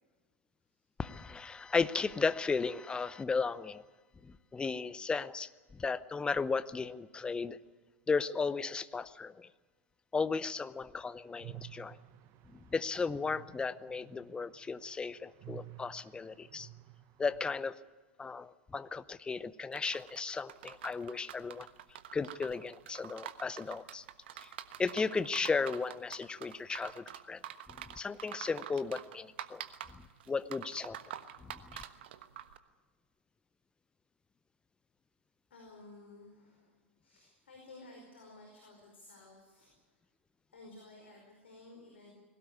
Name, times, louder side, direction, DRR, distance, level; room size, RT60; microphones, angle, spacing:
voice 1, 1.0-3.8 4.2-7.6 8.1-9.5 10.1-12.0 12.5-16.7 17.2-17.8 18.2-21.7 22.1-24.0 24.4-24.5 24.8-27.4 27.7-29.6 29.9-31.0 31.4-31.8, left 4 dB, 15° left, 16 dB, 0.8 m, -35 dB
sound 1, 11.3-17.6, right 14 dB, 40° right, 1.2 m, -53 dB
sound 2, 19.7-32.6, right 11 dB, 60° right, 1.2 m, -47 dB
voice 2, 35.5-36.7 37.0-39.8 40.5-42.1, left 2 dB, 70° left, 1 dB, 5.0 m, -54 dB
20.5 x 17.5 x 9.7 m, 1.4 s
figure-of-eight pair, 90°, 7 cm